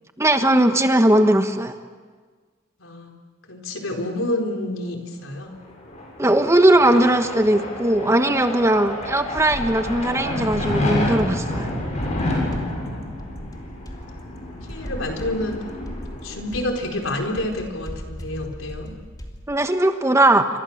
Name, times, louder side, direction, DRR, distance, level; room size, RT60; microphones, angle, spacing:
voice 1, 0.2-1.7 6.2-11.7 19.5-20.5, right 1 dB, 15° right, 7 dB, 1.4 m, -18 dB
voice 2, 2.8-3.1 3.5-5.5 12.6-13.1 14.7-15.6 16.2-18.9, left 1 dB, 85° left, 2 dB, 4.4 m, -28 dB
sound 1, 5.6-16.9, left 1 dB, 35° left, 7.0 m, -29 dB
sound 2, 8.9-19.5, equal, 20° left, 3.0 m, -39 dB
28.5 x 24.5 x 7.3 m, 1.5 s
head